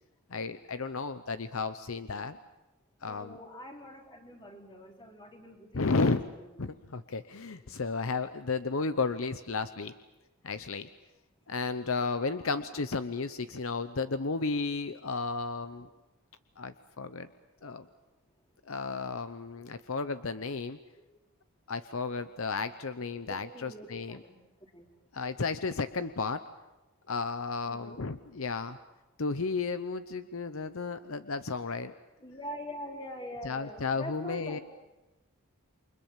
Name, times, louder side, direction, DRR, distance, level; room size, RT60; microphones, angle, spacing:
voice 1, 0.3-2.4 3.0-3.4 5.7-6.2 6.6-9.9 10.4-10.9 11.5-15.9 16.6-17.3 17.6-17.9 18.7-20.8 21.7-24.2 25.1-26.4 27.1-28.8 29.2-31.9 33.4-34.6, left 4 dB, 65° left, 11 dB, 0.8 m, -33 dB
voice 2, 3.1-6.5 12.4-12.6 17.6-17.8 23.3-24.9 27.7-28.0 32.2-34.6, equal, 20° left, 1 dB, 3.7 m, -45 dB
29.0 x 24.5 x 7.2 m, 1.0 s
head